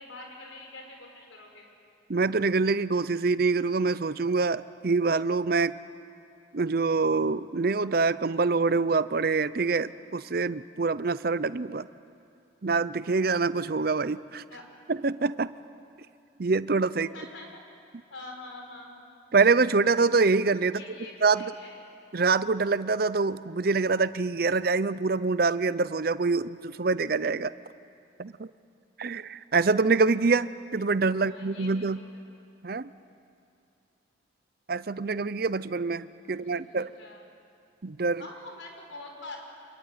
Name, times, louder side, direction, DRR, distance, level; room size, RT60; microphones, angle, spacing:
voice 1, 0.0-1.7 14.5-14.7 16.9-17.7 18.1-19.0 20.7-21.9 31.2-32.2 36.3-37.2 38.2-39.4, left 2 dB, 90° left, 2 dB, 5.5 m, -45 dB
voice 2, 2.1-5.8 6.5-11.9 12.6-14.4 14.9-15.5 16.4-17.1 19.3-20.8 21.2-21.4 22.1-27.5 28.2-28.5 29.0-32.0 32.6-32.9 34.7-36.9 37.8-38.2, right 4 dB, 50° right, 16 dB, 0.6 m, -25 dB
26.5 x 22.5 x 9.5 m, 2.6 s
head